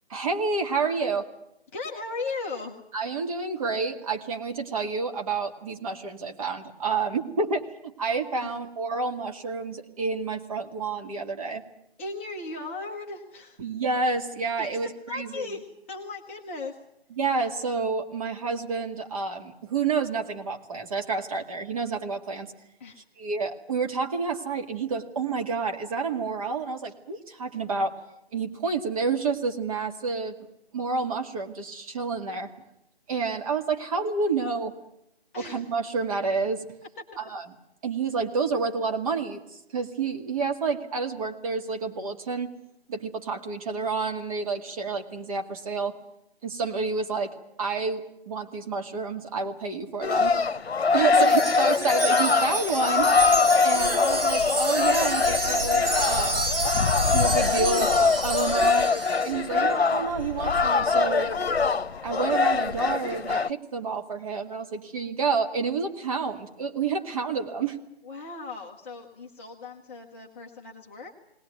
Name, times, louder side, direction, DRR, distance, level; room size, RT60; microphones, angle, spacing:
voice 1, 0.1-1.3 2.9-11.6 13.6-15.3 17.2-22.5 23.2-27.9 28.3-30.3 30.7-32.5 33.1-34.7 35.4-36.6 37.2-37.5 37.8-39.4 39.7-42.5 42.9-45.9 46.4-50.4 50.9-53.1 53.6-56.4 57.1-57.9 58.2-58.9 59.2-61.3 62.0-67.8, right 4 dB, 35° right, 4 dB, 2.1 m, -29 dB
voice 2, 1.7-2.8 8.4-8.5 12.0-13.6 14.6-14.8 15.1-16.8 22.8-23.0 35.3-35.7 37.0-37.1 51.2-51.3 59.5-59.7 68.0-71.2, left 3 dB, 15° left, -1 dB, 0.9 m, -37 dB
sound 1, 50.0-63.5, left 4 dB, 85° left, 0.9 m, -23 dB
Wind chime, 51.1-59.3, right 3 dB, 65° right, 2.7 m, -30 dB
20.5 x 19.0 x 9.5 m, 0.79 s
figure-of-eight pair, 160°, 31 cm